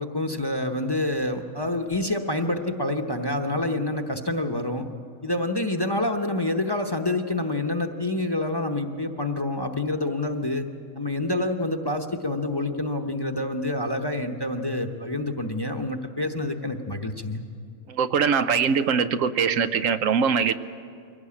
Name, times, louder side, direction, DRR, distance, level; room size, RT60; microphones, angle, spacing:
voice 1, 0.0-4.9 5.2-10.7 10.9-17.4, left 2 dB, 20° left, 0.9 m, -27 dB
voice 2, 17.9-20.5, right 6 dB, 80° right, 1.1 m, -22 dB
23.5 x 17.5 x 8.6 m
omnidirectional pair, 1.4 m